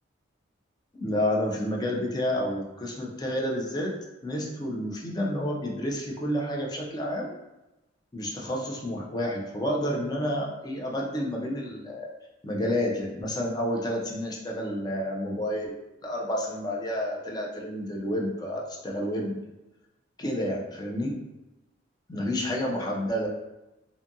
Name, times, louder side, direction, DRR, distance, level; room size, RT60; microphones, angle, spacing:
voice 1, 0.9-3.9 4.2-7.3 8.1-12.1 12.4-15.8 16.0-19.4 20.2-21.2 22.1-23.3, equal, 20° left, -2 dB, 0.4 m, -30 dB
2.6 x 2.4 x 2.6 m, 0.98 s
head